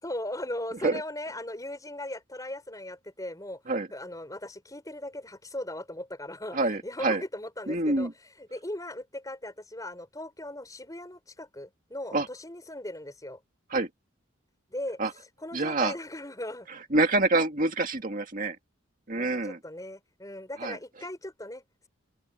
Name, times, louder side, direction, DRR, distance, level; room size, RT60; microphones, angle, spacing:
voice 1, 0.0-3.6 3.9-8.1 8.4-13.4 14.7-15.0 15.4-16.7 19.1-21.9, left 1 dB, 15° left, 6.1 m, -38 dB
voice 2, 6.5-7.2 7.7-8.1 12.1-12.3 13.7-13.9 15.0-15.1 15.5-15.9 16.9-18.6 19.1-19.6 20.6-20.8, right 2 dB, 45° right, 2.2 m, -26 dB
head